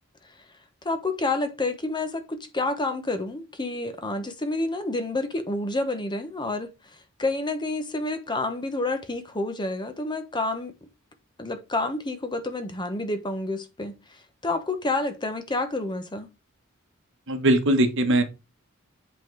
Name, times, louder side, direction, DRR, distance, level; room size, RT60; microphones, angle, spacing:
voice 1, 0.8-10.7 11.4-16.3, left 2 dB, 20° left, 1.1 m, -29 dB
voice 2, 17.3-18.2, right 1 dB, 60° right, 1.3 m, -20 dB
8.2 x 4.0 x 4.6 m
head